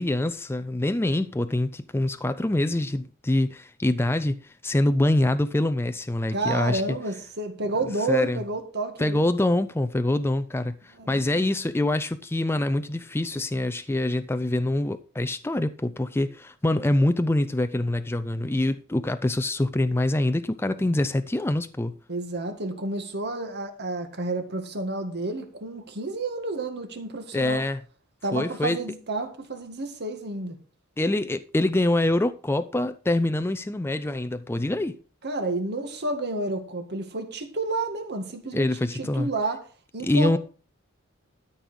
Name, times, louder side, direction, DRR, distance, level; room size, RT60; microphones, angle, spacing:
voice 1, 0.0-6.8 8.1-8.4 9.0-22.0 27.3-27.8 28.3-28.8 31.0-35.0 38.5-39.3 40.0-40.4, left 1 dB, 10° left, 0.5 m, -25 dB
voice 2, 6.3-9.2 11.0-11.5 22.1-27.6 28.2-30.6 35.2-39.7 39.9-40.4, right 2 dB, 50° right, 1.9 m, -30 dB
13.0 x 5.5 x 6.2 m
head